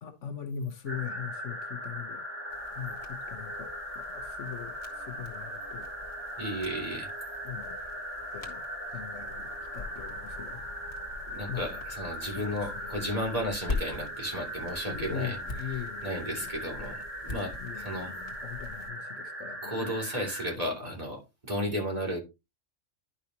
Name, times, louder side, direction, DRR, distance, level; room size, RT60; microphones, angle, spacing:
voice 1, 0.0-2.2 2.8-5.9 7.4-7.8 8.3-8.6 8.9-10.6 11.5-11.8 12.3-12.6 12.9-13.0 14.9-16.5 17.6-20.0 20.6-20.7, left 8 dB, 70° left, 1.4 m, -40 dB
sound 1, 0.9-20.6, equal, 10° right, 2.6 m, -39 dB
sound 2, 2.5-18.9, left 3 dB, 55° left, 1.9 m, -44 dB
voice 2, 6.4-7.1 11.3-15.4 15.7-18.1 19.6-22.2, equal, 30° right, 2.9 m, -34 dB
11.0 x 5.6 x 2.8 m
omnidirectional pair, 1.3 m